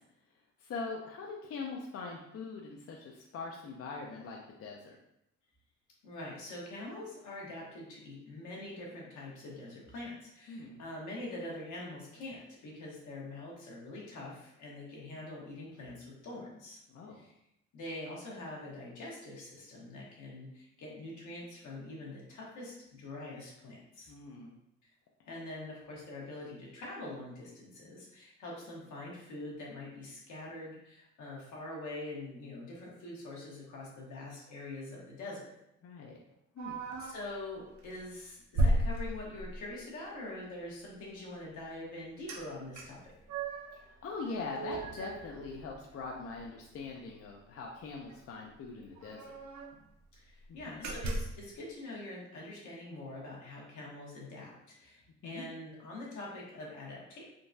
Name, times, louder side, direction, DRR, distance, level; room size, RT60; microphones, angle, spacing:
voice 1, 0.6-5.0 10.5-10.8 16.9-17.2 24.1-24.6 35.8-36.2 36.6-36.8 44.0-49.4 50.5-50.9 55.2-55.4, left 4 dB, 50° left, 0 dB, 0.5 m, -42 dB
voice 2, 6.0-16.8 17.1-17.3 17.7-24.1 25.2-35.5 37.1-43.1 50.1-57.2, left 2 dB, 75° left, -4 dB, 1.1 m, -44 dB
sound 1, 36.6-37.3 37.8-38.0 38.5-39.7 42.3-42.4 42.7-43.8 44.2-46.0 46.3-46.4 46.8-47.0 48.1-48.2 48.4-48.5 49.0-49.8 50.3-50.4 50.8-51.5, right 2 dB, 65° right, 0.6 m, -34 dB
sound 2, 43.7-47.6, right 2 dB, 30° right, 0.6 m, -58 dB
3.7 x 2.3 x 2.6 m, 0.81 s
cardioid pair, 90°, 30 cm